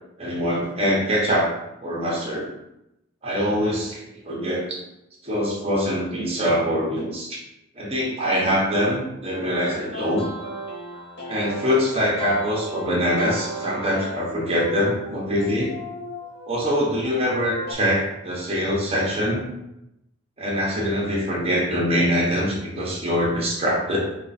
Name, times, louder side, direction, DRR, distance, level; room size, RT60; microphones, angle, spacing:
voice 1, 0.2-1.5 1.8-2.5 3.2-4.8 5.2-7.4 7.7-10.3 11.3-15.7 16.5-19.4 20.4-24.0, equal, 30° right, -4 dB, 1.1 m, -23 dB
sound 1, 9.3-17.7, equal, 50° left, 1.1 m, -36 dB
4.6 x 2.5 x 4.2 m, 0.86 s
head